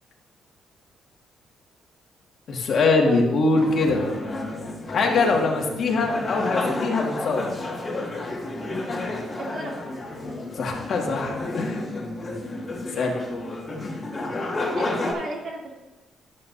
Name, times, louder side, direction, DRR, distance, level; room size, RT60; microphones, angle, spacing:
voice 1, 2.5-4.1 4.9-7.5 10.6-11.8 12.9-13.1, left 3 dB, 60° left, 0 dB, 1.9 m, -22 dB
sound 1, 3.6-15.1, left 2 dB, 30° left, 1.9 m, -31 dB
voice 2, 9.4-9.8 12.9-13.1 14.6-15.7, right 2 dB, 65° right, -2 dB, 2.7 m, -34 dB
11.0 x 8.9 x 2.7 m, 1.1 s
cardioid pair, 90°, 0 cm